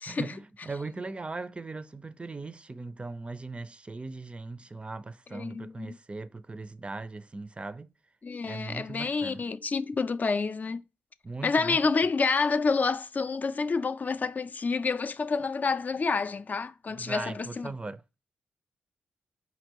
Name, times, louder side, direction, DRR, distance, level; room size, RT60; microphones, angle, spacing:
voice 1, 0.1-7.9 8.4-9.5 11.2-11.8 16.9-18.0, right 3 dB, 25° right, 0.5 m, -39 dB
voice 2, 5.3-6.0 8.2-10.8 11.4-17.7, left 4 dB, 35° left, 0.4 m, -28 dB
5.1 x 2.9 x 2.9 m
hypercardioid pair, 40°, 5 cm